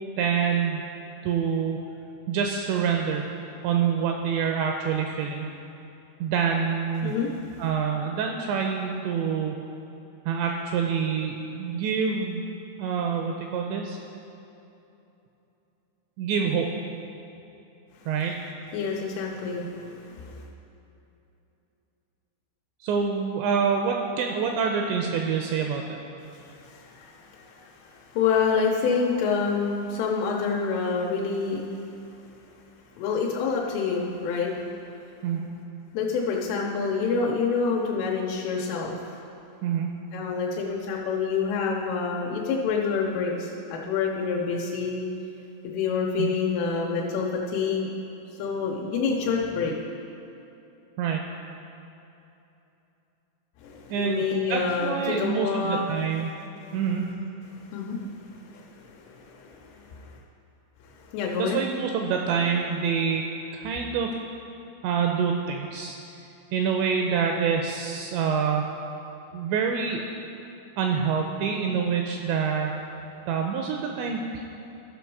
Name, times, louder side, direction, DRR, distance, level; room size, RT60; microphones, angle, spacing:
voice 1, 0.2-0.8 1.2-1.8 2.3-3.3 3.6-5.5 6.2-7.1 7.6-9.6 10.3-12.4 12.8-14.0 16.2-16.7 18.1-18.3 22.8-25.8 35.2-35.5 39.6-39.9 46.2-46.4 51.0-51.2 53.9-54.2 54.5-56.3 56.7-57.0 61.4-63.2 63.5-64.1 64.8-66.0 66.5-68.7 69.3-70.0 70.8-72.8 73.3-74.4, right 6 dB, 85° right, 2 dB, 2.6 m, -26 dB
voice 2, 7.0-7.6 18.7-20.4 26.3-31.6 33.0-34.5 35.9-39.2 40.1-45.1 45.6-47.9 48.4-49.7 53.6-55.8 57.5-60.2 60.8-61.6, left 5 dB, 85° left, -2 dB, 3.3 m, -28 dB
14.5 x 6.0 x 4.7 m, 2.9 s
omnidirectional pair, 5.6 m